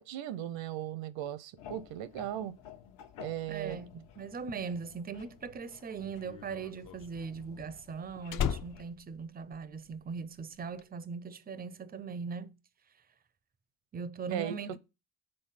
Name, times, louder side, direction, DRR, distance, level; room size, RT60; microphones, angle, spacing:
voice 1, 0.0-2.5 3.2-3.8 14.3-14.6, right 11 dB, 75° right, 0.7 m, -37 dB
sound 1, 1.6-8.9, left 8 dB, 75° left, 1.0 m, -53 dB
voice 2, 3.5-12.6 13.9-14.8, right 5 dB, 20° right, 0.4 m, -40 dB
Slam, 5.3-10.1 10.4-10.8, left 9 dB, 45° left, 0.5 m, -37 dB
5.6 x 3.9 x 5.7 m
cardioid pair, 135°, 45 cm